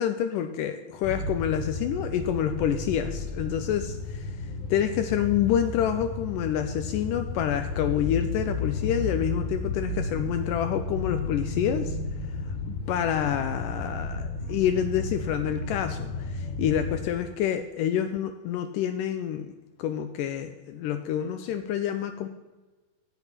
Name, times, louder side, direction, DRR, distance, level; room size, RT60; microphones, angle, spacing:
voice 1, 0.0-4.3 4.7-12.0 12.7-19.5 19.8-22.3, left 9 dB, 85° left, 8 dB, 1.9 m, -28 dB
sound 1, 1.0-17.0, left 3 dB, 60° left, 2.8 m, -33 dB
13.0 x 8.0 x 5.9 m, 1.2 s
omnidirectional pair, 4.5 m